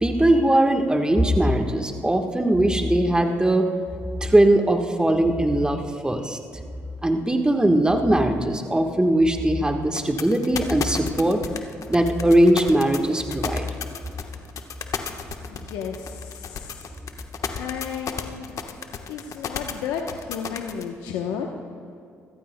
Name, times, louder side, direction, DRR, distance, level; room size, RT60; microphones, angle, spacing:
voice 1, 0.0-3.7 4.2-6.4 7.0-11.4 11.9-13.6, right 1 dB, 10° right, 4 dB, 1.3 m, -20 dB
sound 1, 9.9-20.8, left 7 dB, 55° left, 1.2 m, -32 dB
voice 2, 15.5-16.9 17.5-18.6 19.1-21.5, left 7 dB, 80° left, 2 dB, 0.9 m, -33 dB
23.0 x 15.0 x 2.2 m, 2.4 s
hypercardioid pair, 55°, 6 cm